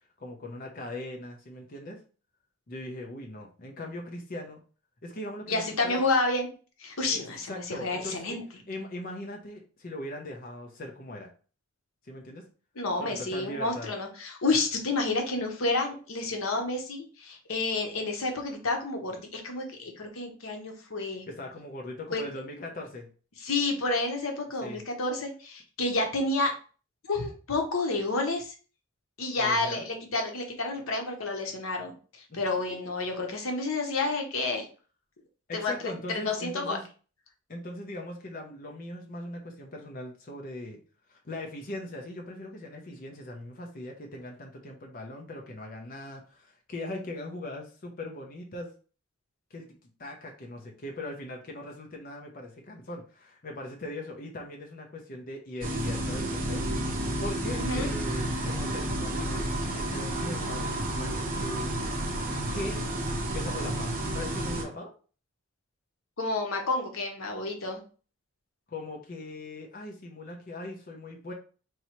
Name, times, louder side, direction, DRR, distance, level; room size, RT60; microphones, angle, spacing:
voice 1, 0.2-2.0 2.7-4.6 5.0-6.0 7.1-7.2 7.5-8.4 8.7-11.3 12.0-12.5 13.0-13.9 21.3-23.1 24.6-24.8 29.4-29.8 32.3-32.4 35.5-36.9 37.5-40.8 41.1-48.7 49.5-49.7 50.0-56.6 57.2-61.8 62.5-62.8 63.3-64.9 68.7-71.3, left 1 dB, 45° left, 0 dB, 0.7 m, -40 dB
voice 2, 5.5-6.5 6.8-8.4 12.8-21.2 22.1-22.2 23.4-26.5 27.1-28.5 29.2-31.9 32.3-34.6 35.5-35.7 36.2-36.8 57.5-57.9 66.2-67.8, left 2 dB, 85° left, 3 dB, 0.9 m, -30 dB
sound 1, 55.6-64.6, right 1 dB, 45° right, 0.9 m, -31 dB
4.6 x 2.8 x 3.0 m, 0.38 s
head